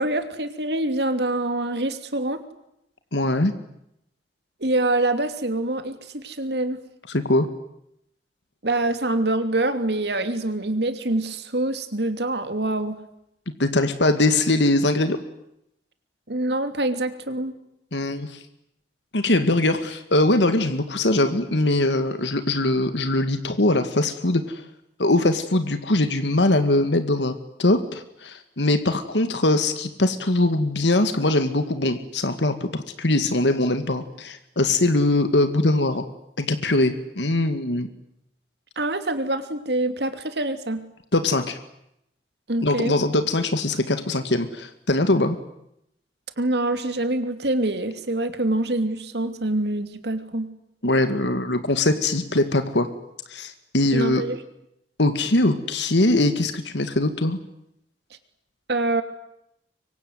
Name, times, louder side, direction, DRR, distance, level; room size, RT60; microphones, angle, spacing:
voice 1, 0.0-2.4 4.6-6.8 8.6-13.0 16.3-17.5 38.8-40.8 42.5-43.0 46.4-50.5 53.9-54.4 58.7-59.0, right 2 dB, 65° right, 9 dB, 2.9 m, -25 dB
voice 2, 3.1-3.5 7.1-7.5 13.6-15.2 17.9-18.4 19.1-24.6 25.0-36.0 36.4-37.9 41.1-41.6 42.6-45.4 50.8-52.9 53.3-54.2 55.0-57.4, left 2 dB, 90° left, 9 dB, 2.0 m, -22 dB
25.0 x 24.0 x 9.5 m, 0.80 s
head